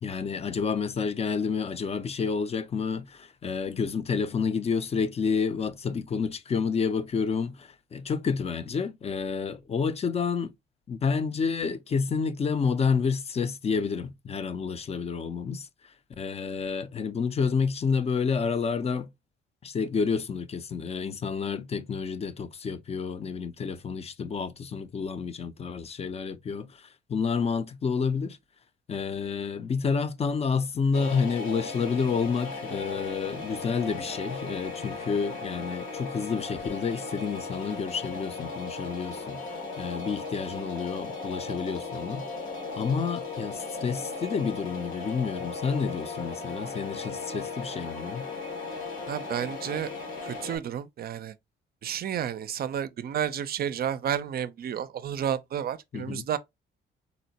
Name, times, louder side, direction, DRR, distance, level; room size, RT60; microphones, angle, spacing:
voice 1, 0.0-10.5 10.9-15.7 16.2-19.1 19.6-28.4 28.9-39.4 39.8-42.2 42.8-48.3 55.9-56.3, left 5 dB, 30° left, 0.4 m, -29 dB
sound 1, 30.9-50.6, left 3 dB, 80° left, 1.0 m, -37 dB
voice 2, 49.1-49.9 50.2-51.3 51.8-56.4, right 9 dB, 50° right, 0.4 m, -31 dB
3.9 x 2.1 x 2.7 m
cardioid pair, 90°, 20 cm